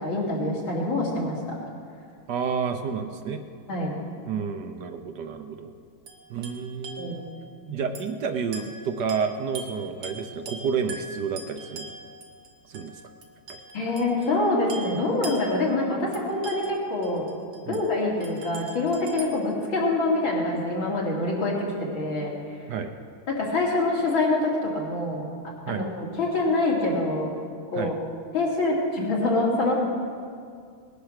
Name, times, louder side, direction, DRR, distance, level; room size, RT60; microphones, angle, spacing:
voice 1, 0.0-1.6 3.7-3.9 7.0-7.2 7.7-7.8 13.7-17.3 17.7-22.3 23.3-25.3 25.7-27.3 27.7-27.9 28.3-29.8, left 2 dB, 70° left, -3 dB, 3.7 m, -25 dB
voice 2, 2.3-3.4 4.3-5.7 6.3-7.2 7.7-11.9 12.7-12.9 17.7-17.8 22.7-22.9 25.7-25.8 27.7-27.9, right 6 dB, 65° right, 7 dB, 1.2 m, -30 dB
sound 1, 6.1-7.5 7.9-8.2 8.5-14.4 14.7-17.8 18.2-19.2, right 3 dB, 85° right, 2.4 m, -42 dB
19.5 x 10.5 x 6.5 m, 2.2 s
omnidirectional pair, 2.3 m